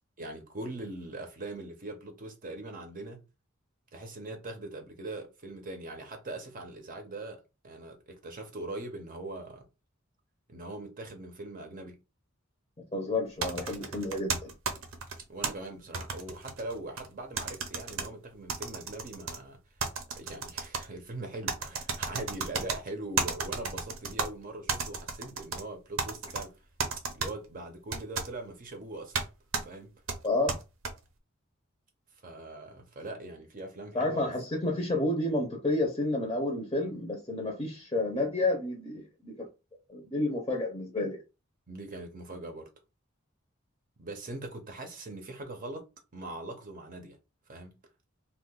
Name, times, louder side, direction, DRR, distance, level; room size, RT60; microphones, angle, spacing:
voice 1, 0.2-3.2 3.9-9.6 10.5-12.0 15.3-19.6 20.2-26.5 27.1-29.2 29.6-29.9 32.2-34.3 41.7-42.7 44.0-45.9 46.1-47.2 47.5-47.8, right 2 dB, 40° right, 0.7 m, -41 dB
voice 2, 12.9-14.5 30.2-30.6 33.9-39.5 39.9-41.2, left 2 dB, 20° left, 0.7 m, -30 dB
sound 1, 13.4-15.5 15.9-17.1 17.4-18.1 18.5-19.4 19.8-20.8 21.5-22.8 23.2-24.3 24.7-25.6 26.0-26.4 26.8-27.3 27.9-28.3 29.1-29.3 29.5-29.6 30.1-30.9, right 4 dB, 75° right, 0.7 m, -33 dB
2.8 x 2.4 x 3.6 m
head